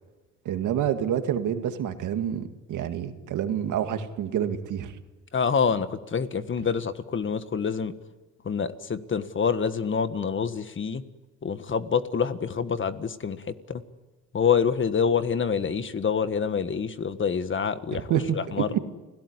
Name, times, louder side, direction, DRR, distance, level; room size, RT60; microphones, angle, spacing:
voice 1, 0.5-4.9 17.9-18.8, right 9 dB, 80° right, 8 dB, 2.2 m, -28 dB
voice 2, 5.3-7.9 8.4-11.0 11.4-13.8 14.3-18.7, left 6 dB, 40° left, 12 dB, 1.6 m, -26 dB
29.5 x 17.5 x 9.8 m, 1.2 s
cardioid pair, 90°, 30 cm